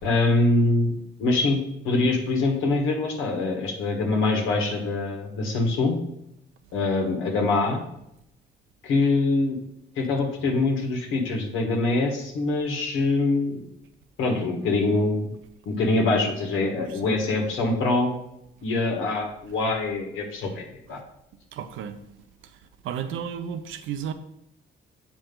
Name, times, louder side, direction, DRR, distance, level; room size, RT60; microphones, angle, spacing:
voice 1, 0.0-5.9 6.7-7.8 8.8-9.6 9.9-13.6 14.2-15.3 15.6-18.1 18.6-20.6 20.9-21.0, left 2 dB, 90° left, 1.6 m, -24 dB
voice 2, 21.5-22.0 22.8-24.1, right 8 dB, 85° right, 0.7 m, -33 dB
7.5 x 4.8 x 3.9 m
cardioid pair, 90°, 20 cm